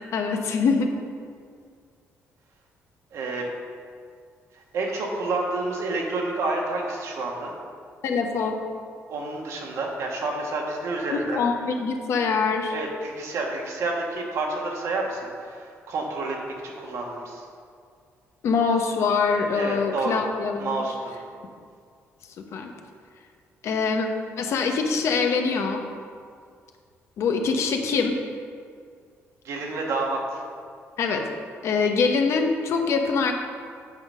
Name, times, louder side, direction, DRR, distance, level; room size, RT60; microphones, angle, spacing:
voice 1, 0.1-0.9 8.0-8.6 11.1-12.7 18.4-20.8 22.5-22.7 23.6-24.1 24.4-25.8 27.2-28.1 31.0-31.2 31.6-33.3, left 5 dB, 65° left, 4 dB, 0.9 m, -24 dB
voice 2, 3.1-3.4 4.7-7.5 9.1-11.4 12.7-16.4 16.6-17.4 19.5-20.2 20.6-21.1 29.4-30.4, right 2 dB, 70° right, 0 dB, 1.4 m, -29 dB
8.6 x 4.1 x 6.2 m, 2.1 s
cardioid pair, 120°, 5 cm